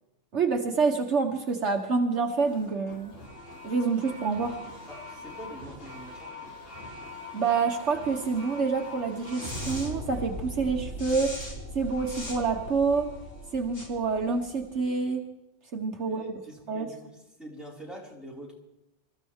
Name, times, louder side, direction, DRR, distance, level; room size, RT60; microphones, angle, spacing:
voice 1, 0.3-3.1 3.6-4.6 7.3-11.3 11.7-13.1 13.5-15.3 15.7-16.2 16.7-16.9, right 4 dB, 65° right, 3 dB, 1.6 m, -27 dB
sound 1, 2.5-14.8, left 1 dB, 85° left, 4.3 m, -40 dB
voice 2, 4.9-6.3 16.0-18.5, right 1 dB, ahead, -5 dB, 5.3 m, -45 dB
27.0 x 14.5 x 3.6 m, 0.91 s
omnidirectional pair, 1.3 m